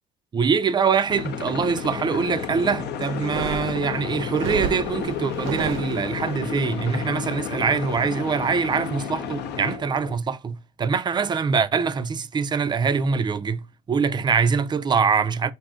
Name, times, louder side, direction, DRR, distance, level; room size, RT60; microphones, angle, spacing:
voice 1, 0.3-15.5, right 5 dB, 20° right, 0.4 m, -24 dB
sound 1, 1.1-9.8, left 7 dB, 60° left, 0.7 m, -31 dB
sound 2, 2.0-10.2, left 3 dB, 40° left, 1.0 m, -41 dB
sound 3, 3.1-6.4, right 9 dB, 80° right, 0.6 m, -32 dB
4.8 x 2.6 x 3.6 m
cardioid pair, 120°, 20 cm